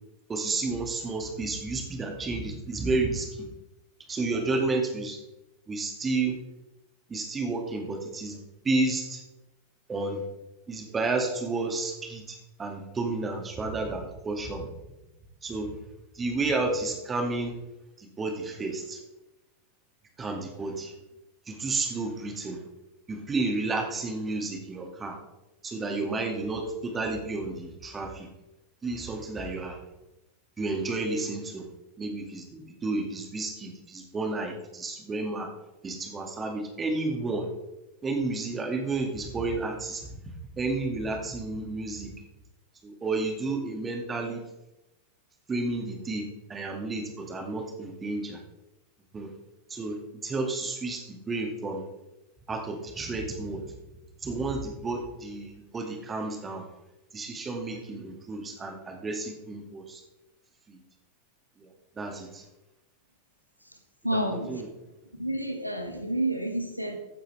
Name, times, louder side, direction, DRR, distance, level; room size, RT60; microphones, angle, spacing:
voice 1, 0.3-3.5 4.1-5.2 5.7-6.4 7.1-8.4 8.6-9.2 9.9-10.2 10.7-14.7 15.4-15.7 16.1-17.5 18.0-19.0 20.2-20.9 21.5-22.6 23.1-25.2 25.6-28.3 28.8-29.8 30.6-31.7 32.0-35.5 35.8-37.5 38.0-40.1 40.5-42.1 42.8-44.4 45.5-48.4 49.1-49.3 49.7-51.8 52.5-53.6 54.2-56.6 57.1-60.0 60.7-60.8 61.6-61.7 62.0-62.4 64.1-64.7, right 3 dB, 20° right, 3 dB, 2.1 m, -31 dB
voice 2, 64.0-64.5 65.2-67.0, right 1 dB, 90° right, 5 dB, 1.3 m, -29 dB
15.5 x 9.0 x 3.3 m, 0.97 s
figure-of-eight pair, 90°, 0 cm